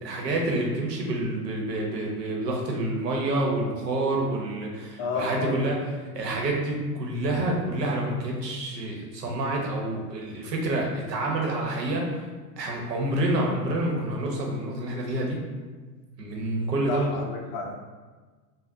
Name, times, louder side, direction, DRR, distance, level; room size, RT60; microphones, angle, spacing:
voice 1, 0.0-5.8 6.1-12.1 12.6-15.4 16.2-17.2, right 1 dB, 85° right, 0 dB, 0.8 m, -28 dB
voice 2, 5.0-5.7 16.9-17.8, left 4 dB, 40° left, 2 dB, 0.4 m, -31 dB
3.5 x 2.1 x 2.6 m, 1.4 s
hypercardioid pair, 100°, 48 cm